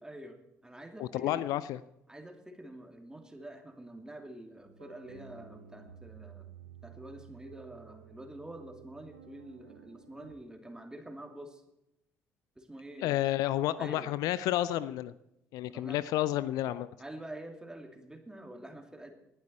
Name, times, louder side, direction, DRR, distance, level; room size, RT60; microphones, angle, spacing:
voice 1, 0.0-1.5 2.1-6.5 6.8-11.6 12.6-13.2 13.8-14.1 15.7-16.1 17.0-19.1, right 1 dB, 10° right, 5 dB, 2.6 m, -47 dB
voice 2, 1.0-1.6 13.0-15.1 15.5-16.9, left 14 dB, 60° left, 17 dB, 0.5 m, -30 dB
sound 1, 4.7-10.3, right 9 dB, 85° right, 0.9 m, -53 dB
19.0 x 11.5 x 4.3 m, 0.85 s
figure-of-eight pair, 50°, 7 cm